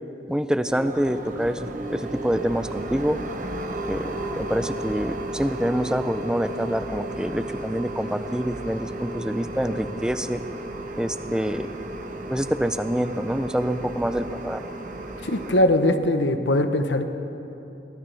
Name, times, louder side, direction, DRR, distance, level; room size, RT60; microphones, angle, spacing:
voice 1, 0.3-3.2 3.9-10.4 11.0-11.7 12.3-14.7, equal, 5° right, 10 dB, 0.5 m, -26 dB
sound 1, 0.7-15.7, right 1 dB, 50° right, 1.0 m, -34 dB
voice 2, 15.2-17.0, left 1 dB, 90° left, 8 dB, 1.0 m, -21 dB
23.5 x 17.5 x 3.4 m, 2.9 s
head